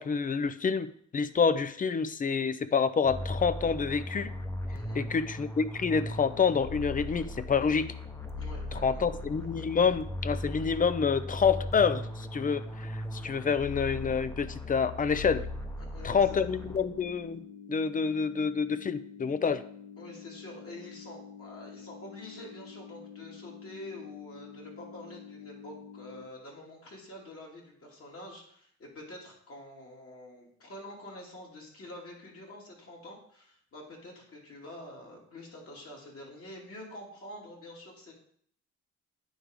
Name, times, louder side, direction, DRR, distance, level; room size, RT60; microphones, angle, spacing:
voice 1, 0.0-4.3 4.9-7.9 8.7-15.4 16.0-19.6, left 6 dB, 30° left, 14 dB, 0.4 m, -28 dB
sound 1, 3.0-17.2, left 1 dB, 10° left, 0.8 m, -38 dB
voice 2, 4.7-5.0 8.4-9.0 15.8-16.4 19.4-19.5 20.0-38.1, left 1 dB, 50° left, -2 dB, 2.6 m, -47 dB
sound 2, 16.2-26.2, left 7 dB, 75° left, 1.6 m, -48 dB
9.1 x 3.4 x 5.0 m, 0.62 s
cardioid pair, 90°, 30 cm